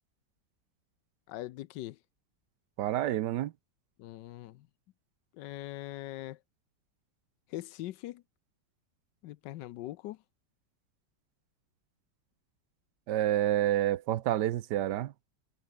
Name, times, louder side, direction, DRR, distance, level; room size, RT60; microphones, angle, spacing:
voice 1, 1.3-2.0 4.0-4.7 5.3-6.4 7.5-8.2 9.2-10.2, left 15 dB, 80° left, 1.3 m, -41 dB
voice 2, 2.8-3.5 13.1-15.1, right 12 dB, 75° right, 1.4 m, -28 dB
omnidirectional pair, 1.9 m